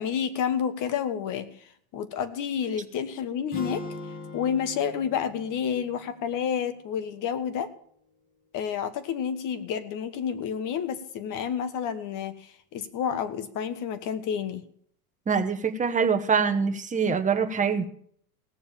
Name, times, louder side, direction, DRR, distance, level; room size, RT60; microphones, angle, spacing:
voice 1, 0.0-1.5 1.9-3.8 4.3-7.7 8.5-14.6, left 8 dB, 40° left, 11 dB, 1.5 m, -30 dB
sound 1, 3.5-7.7, left 3 dB, 20° left, 1.8 m, -42 dB
voice 2, 15.3-17.8, right 6 dB, 15° right, 7 dB, 1.3 m, -24 dB
17.5 x 7.0 x 7.2 m, 0.63 s
hypercardioid pair, 100°, 46 cm